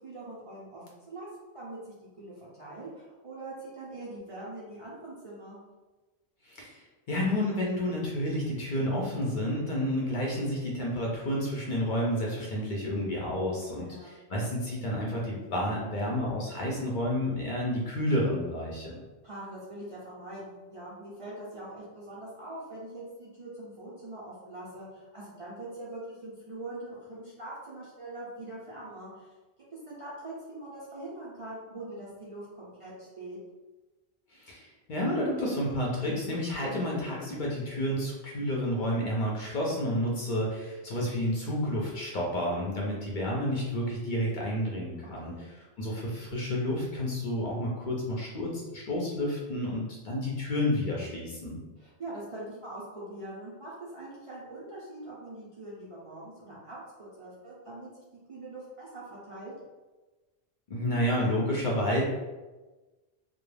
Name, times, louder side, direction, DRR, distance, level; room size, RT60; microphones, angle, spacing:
voice 1, 0.0-1.3 1.5-5.6 13.7-14.2 19.2-29.3 29.9-33.4 45.2-45.4 51.8-58.0 58.3-59.5, right 2 dB, 45° right, -7 dB, 0.5 m, -43 dB
voice 2, 6.4-19.0 34.3-51.6 60.7-62.0, left 1 dB, 55° left, -3 dB, 0.6 m, -30 dB
2.2 x 2.1 x 3.1 m, 1.2 s
omnidirectional pair, 1.1 m